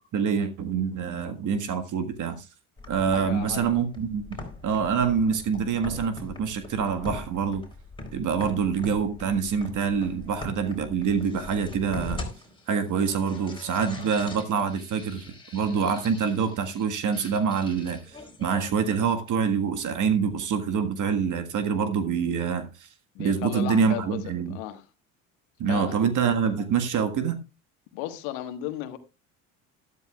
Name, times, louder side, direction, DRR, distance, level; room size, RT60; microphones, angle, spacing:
voice 1, 0.1-2.4 2.9-4.4 4.6-7.6 8.1-12.2 12.7-15.2 15.5-22.9 23.2-24.6 25.6-27.4, right 6 dB, 50° right, 1.6 m, -26 dB
sound 1, 2.8-18.8, left 2 dB, 15° left, 3.9 m, -42 dB
voice 2, 3.1-3.8 23.1-24.2 24.5-24.8 25.7-26.0 27.9-29.0, left 13 dB, 75° left, 1.5 m, -34 dB
12.5 x 12.0 x 2.4 m
hypercardioid pair, 65°, 38 cm